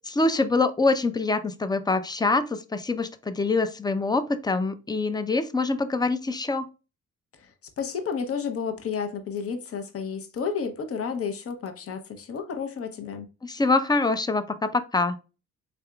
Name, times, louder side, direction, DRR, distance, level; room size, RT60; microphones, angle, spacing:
voice 1, 0.1-6.7 13.4-15.2, left 3 dB, 15° left, 0.4 m, -25 dB
voice 2, 7.8-13.3, left 6 dB, 50° left, 0.8 m, -31 dB
3.8 x 3.4 x 2.2 m
cardioid pair, 90°, 30 cm